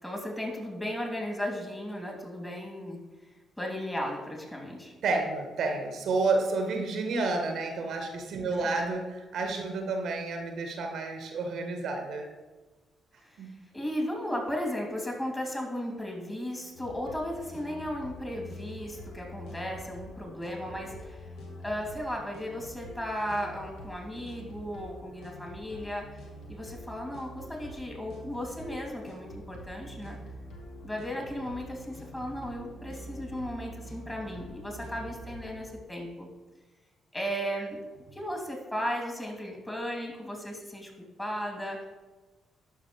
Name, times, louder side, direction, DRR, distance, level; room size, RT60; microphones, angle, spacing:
voice 1, 0.0-3.0 3.6-4.9 8.4-8.7 13.2-21.3 21.6-30.2 30.8-36.3 37.1-37.8 38.1-40.9 41.2-41.9, equal, 15° left, -1 dB, 2.9 m, -35 dB
voice 2, 5.0-12.3 13.4-13.5, right 3 dB, 65° right, 3 dB, 1.0 m, -30 dB
sound 1, 16.7-35.6, equal, 70° left, 1.2 m, -45 dB
11.5 x 5.4 x 3.2 m, 1.2 s
hypercardioid pair, 45°, 0 cm